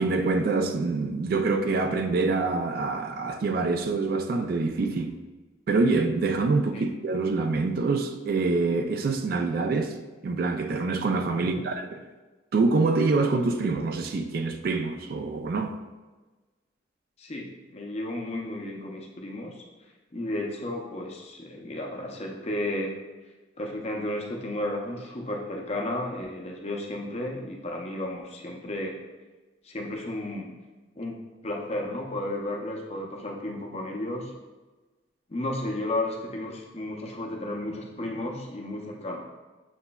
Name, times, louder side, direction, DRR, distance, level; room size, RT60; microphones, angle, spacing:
voice 1, 0.0-5.2 5.7-9.9 10.2-12.0 12.5-15.8, right 3 dB, 50° right, 0.3 m, -25 dB
voice 2, 17.2-19.6 20.1-22.9 23.6-28.9 29.6-30.5 31.0-31.2 31.4-34.3 35.3-39.2, left 1 dB, 35° left, 0.6 m, -33 dB
6.7 x 3.0 x 2.2 m
head